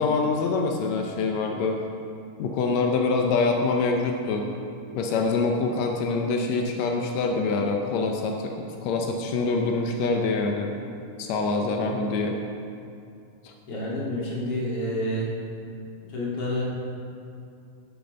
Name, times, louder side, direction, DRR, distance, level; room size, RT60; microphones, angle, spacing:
voice 1, 0.0-1.8 2.4-4.5 4.9-10.7 11.2-12.4 13.4-13.5, left 3 dB, 80° left, 2 dB, 1.6 m, -25 dB
voice 2, 13.7-15.3 16.1-16.6, left 1 dB, 45° left, -5 dB, 2.8 m, -28 dB
12.0 x 7.0 x 5.3 m, 2.6 s
omnidirectional pair, 4.0 m